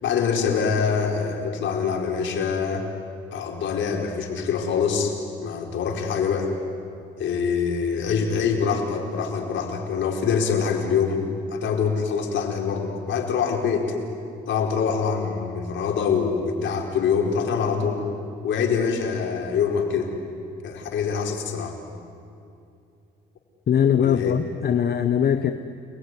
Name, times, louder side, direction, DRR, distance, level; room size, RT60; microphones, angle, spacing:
voice 1, 0.0-2.9 3.3-5.1 5.4-6.5 7.2-13.9 14.5-18.0 18.4-20.1 20.6-21.8 24.0-24.3, left 6 dB, 70° left, 2 dB, 4.7 m, -24 dB
voice 2, 23.7-25.5, left 8 dB, 55° left, 9 dB, 1.1 m, -21 dB
29.5 x 20.5 x 9.8 m, 2.5 s
cardioid pair, 90°, 20 cm